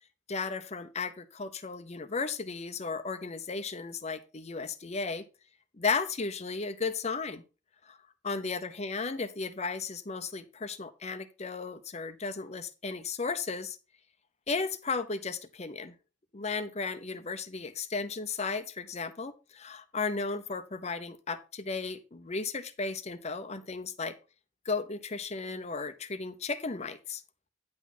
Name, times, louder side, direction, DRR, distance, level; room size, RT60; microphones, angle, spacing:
voice 1, 0.3-5.2 5.7-7.4 7.9-8.0 8.2-13.8 14.5-15.9 16.3-24.1 24.6-27.2, left 4 dB, 35° left, 11 dB, 0.8 m, -35 dB
9.7 x 6.0 x 4.3 m, 0.32 s
head